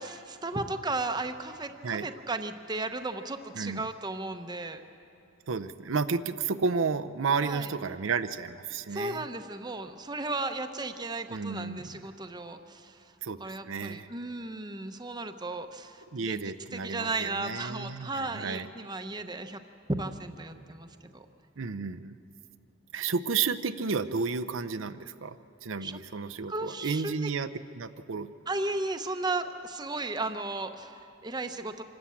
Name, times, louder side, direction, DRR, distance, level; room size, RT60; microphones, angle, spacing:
voice 1, 0.0-4.8 7.4-7.7 8.9-13.1 13.4-19.6 19.9-21.3 25.8-26.0 26.5-27.3 28.5-31.8, right 2 dB, 20° right, 7 dB, 0.8 m, -35 dB
voice 2, 3.5-3.9 5.5-9.2 11.3-12.1 13.2-14.1 16.1-18.7 21.6-22.2 22.9-27.5 27.7-28.3, right 5 dB, 75° right, 10 dB, 0.6 m, -32 dB
26.0 x 13.0 x 8.5 m, 2.8 s
head